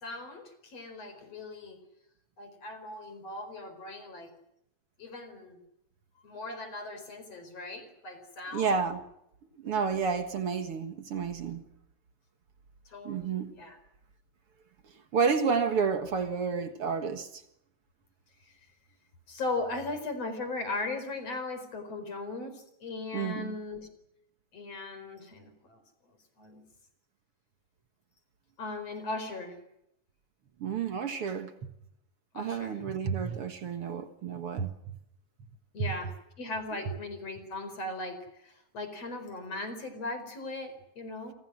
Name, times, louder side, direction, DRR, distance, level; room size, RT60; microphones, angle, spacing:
voice 1, 0.0-1.8 2.4-4.3 5.0-5.6 6.2-8.8 9.7-9.8 12.9-13.8 19.3-23.9 24.5-25.8 26.4-26.6 28.6-29.6 32.3-32.8 35.7-38.2 38.4-41.3, left 2 dB, 40° left, 5.3 m, -38 dB
voice 2, 8.5-9.0 9.6-11.6 13.0-13.5 15.1-17.4 23.1-23.6 30.6-31.7 32.3-34.7 36.9-37.0, right 5 dB, 55° right, 1.6 m, -30 dB
29.0 x 26.0 x 6.3 m
omnidirectional pair, 4.7 m